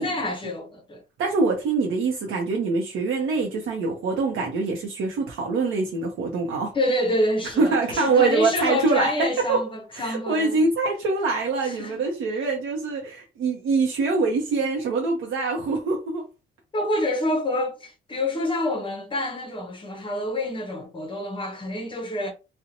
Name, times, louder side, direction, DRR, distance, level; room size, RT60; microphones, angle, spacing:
voice 1, 0.0-1.0 6.7-10.7 11.6-12.0 16.7-22.3, left 1 dB, 25° left, 0.5 m, -27 dB
voice 2, 1.2-6.7 7.6-9.6 9.9-16.3, right 4 dB, 80° right, 0.6 m, -24 dB
2.5 x 2.1 x 2.8 m
cardioid pair, 165°, 20 cm